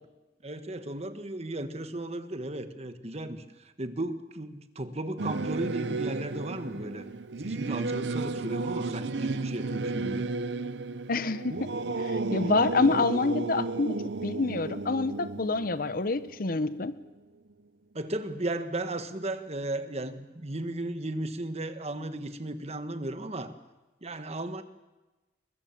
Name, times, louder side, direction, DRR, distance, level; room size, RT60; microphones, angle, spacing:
voice 1, 0.4-3.4 3.8-7.0 7.4-10.3 17.9-23.5 24.0-24.6, right 1 dB, 35° right, 10 dB, 1.5 m, -35 dB
Singing / Musical instrument, 5.2-17.0, right 3 dB, 70° right, 0.7 m, -33 dB
voice 2, 11.1-11.7 12.0-17.0, left 3 dB, 50° left, 15 dB, 0.9 m, -27 dB
22.0 x 22.0 x 7.2 m, 1.1 s
head